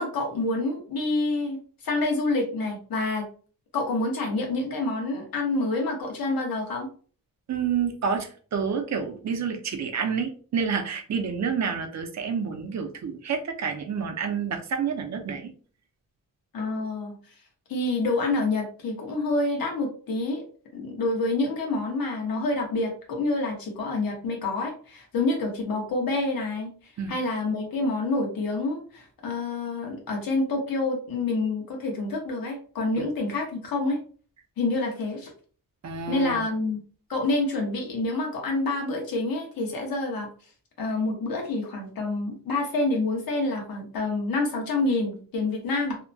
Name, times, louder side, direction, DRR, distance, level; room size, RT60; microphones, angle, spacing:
voice 1, 0.0-3.2 3.7-6.9 16.5-17.1 17.7-20.4 20.7-26.7 27.1-34.0 34.6-35.3 36.1-36.8 37.1-40.3 40.8-46.0, left 2 dB, 85° left, 1 dB, 1.0 m, -27 dB
voice 2, 7.5-15.5 27.0-27.1 33.0-33.1 35.8-36.4, right 6 dB, 55° right, 5 dB, 0.6 m, -29 dB
2.8 x 2.2 x 2.6 m, 0.41 s
wide cardioid pair, 115°, 34 cm